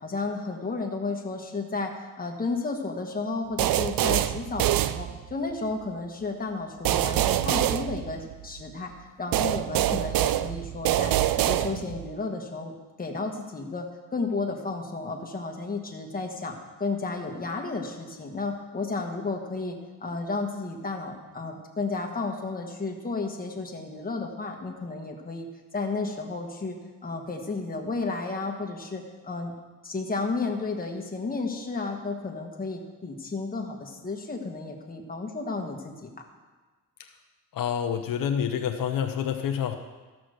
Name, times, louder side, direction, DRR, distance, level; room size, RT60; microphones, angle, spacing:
voice 1, 0.0-8.9 9.2-25.5 25.7-29.5 29.8-36.3, left 3 dB, 25° left, 1 dB, 1.5 m, -32 dB
sound 1, 3.6-5.5 6.8-8.6 9.3-12.1, right 13 dB, 80° right, 0.5 m, -25 dB
voice 2, 37.5-39.7, left 8 dB, 75° left, 5 dB, 0.8 m, -28 dB
14.0 x 6.1 x 6.5 m, 1.3 s
cardioid pair, 120°, 34 cm